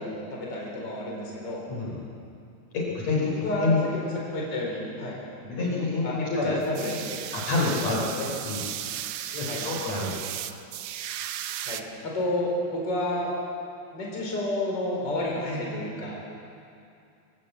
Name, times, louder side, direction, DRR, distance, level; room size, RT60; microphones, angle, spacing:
voice 1, 0.0-1.6 3.3-5.2 6.0-7.3 9.5-9.6 11.6-13.3 13.9-16.2, left 1 dB, 35° left, -3 dB, 4.9 m, -30 dB
voice 2, 1.7-2.0 2.7-4.0 5.4-6.5 7.3-8.7 9.3-10.3, left 3 dB, 55° left, -3 dB, 5.4 m, -28 dB
sound 1, 6.6-11.8, right 11 dB, 85° right, 1.3 m, -35 dB
24.5 x 17.0 x 8.1 m, 2.6 s
omnidirectional pair, 3.6 m